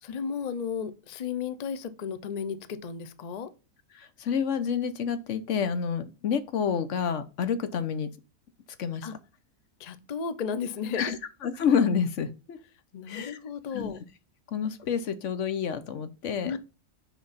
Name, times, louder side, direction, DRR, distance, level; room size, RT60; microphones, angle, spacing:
voice 1, 0.0-3.5 9.0-9.1 9.8-11.1 12.9-14.0 16.4-16.6, left 6 dB, 90° left, 0.3 m, -34 dB
voice 2, 3.9-8.1 8.8-9.1 11.0-11.2 11.4-12.6 13.1-13.4 13.7-13.9 14.5-16.5, left 7 dB, 55° left, 1.0 m, -28 dB
6.1 x 5.2 x 4.1 m
omnidirectional pair, 1.7 m